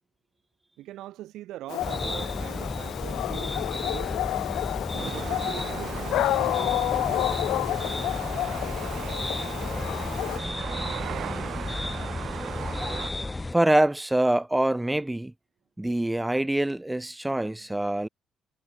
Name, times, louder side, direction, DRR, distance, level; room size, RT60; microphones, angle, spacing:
voice 1, 0.8-4.2 4.9-7.4, right 14 dB, 90° right, 3.0 m, -42 dB
Dog, 1.7-10.4, left 15 dB, 90° left, 0.4 m, -30 dB
sound 1, 1.8-13.5, left 2 dB, 15° left, 1.1 m, -33 dB
sound 2, 5.0-13.1, right 11 dB, 70° right, 2.0 m, -38 dB
voice 2, 13.5-15.3 15.8-18.1, right 1 dB, 10° right, 0.8 m, -24 dB
cardioid pair, 90°, 0 cm